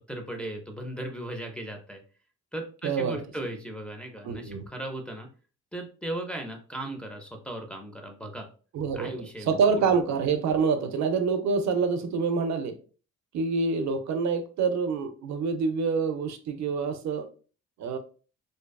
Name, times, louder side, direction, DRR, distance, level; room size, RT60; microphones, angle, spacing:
voice 1, 0.1-2.0 2.5-5.3 5.7-8.5 8.9-9.6, right 1 dB, 5° left, 1 dB, 0.5 m, -37 dB
voice 2, 2.8-3.2 4.2-4.7 8.7-9.1 9.5-12.8 13.3-17.3 17.8-18.0, right 5 dB, 65° right, 8 dB, 0.5 m, -26 dB
2.6 x 2.2 x 2.2 m, 0.38 s
cardioid pair, 90°, 30 cm